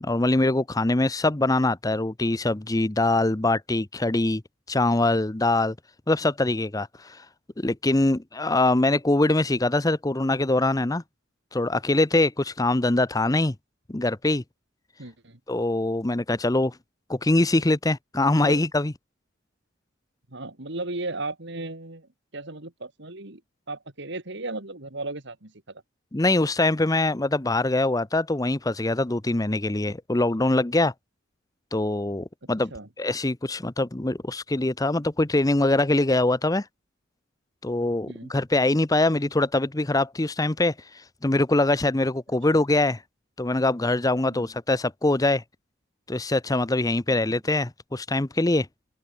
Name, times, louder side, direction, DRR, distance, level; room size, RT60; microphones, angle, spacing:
voice 1, 0.0-4.4 4.7-5.7 6.1-7.2 7.6-11.0 11.5-13.5 13.9-14.4 15.5-16.7 17.1-18.9 26.1-30.9 31.7-32.7 33.0-36.6 37.6-40.7 41.2-43.0 43.4-45.4 46.1-48.7, left 2 dB, 15° left, 0.7 m, -23 dB
voice 2, 15.0-15.4 18.4-18.6 20.3-23.4 23.7-25.8 32.4-32.9 38.1-38.3 44.2-44.5 47.1-47.3, right 2 dB, 60° right, 2.9 m, -36 dB
open air
head